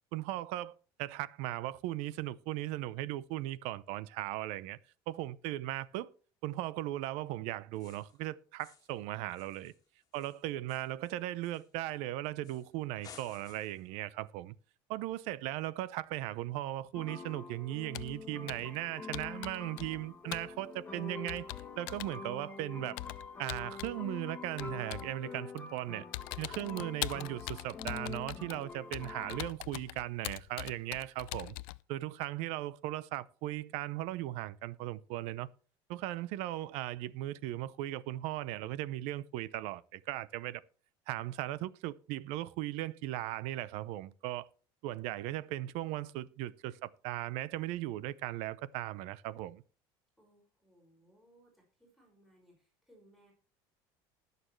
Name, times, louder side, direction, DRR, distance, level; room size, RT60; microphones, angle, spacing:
voice 1, 0.1-0.7 1.0-4.8 5.1-6.1 6.4-9.7 10.1-14.5 14.9-21.5 21.8-23.0 23.4-26.0 26.4-31.5 31.9-35.5 35.9-40.6 41.1-44.5 44.8-49.6, right 15 dB, 75° right, 0.7 m, -38 dB
sound 1, 7.7-8.2 8.6-9.0 9.3-12.0 12.4-12.7 13.0-13.9, left 7 dB, 35° left, 2.0 m, -57 dB
sound 2, 16.9-29.5, left 4 dB, 20° left, 1.9 m, -46 dB
Computer keyboard, 17.9-18.2 18.5-18.8 19.1-20.1 20.3-20.5 21.3-22.2 23.0-24.0 24.6-25.1 25.6-25.8 26.1-31.8, left 23 dB, 85° left, 0.4 m, -42 dB
voice 2, 50.2-53.3, right 1 dB, ahead, 5.2 m, -65 dB
20.0 x 6.9 x 3.2 m
cardioid pair, 125°, 11 cm